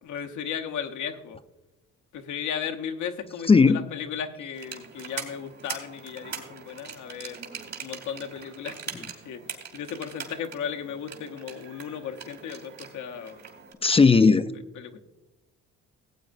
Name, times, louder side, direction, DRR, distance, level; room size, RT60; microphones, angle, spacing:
voice 1, 0.0-1.4 2.1-7.4 7.8-8.8 9.2-9.4 9.7-13.4 14.8-15.0, left 8 dB, 75° left, 5 dB, 1.0 m, -35 dB
voice 2, 3.5-3.8 13.8-14.5, left 4 dB, 20° left, 12 dB, 0.4 m, -17 dB
sound 1, 4.5-13.7, right 6 dB, 60° right, 2.5 m, -41 dB
17.0 x 8.5 x 2.5 m, 0.99 s
cardioid pair, 90°, 30 cm